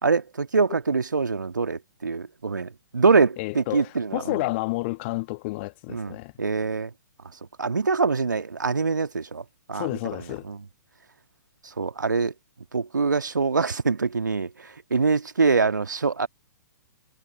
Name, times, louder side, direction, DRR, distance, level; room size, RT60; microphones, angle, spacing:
voice 1, 0.0-4.4 5.9-6.9 7.6-9.4 9.7-9.9 10.4-10.6 11.8-12.3 12.7-16.3, right 4 dB, 75° right, 2.0 m, -24 dB
voice 2, 3.4-6.3 9.7-10.5, left 24 dB, 35° left, 1.4 m, -30 dB
figure-of-eight pair, 115°, 10 cm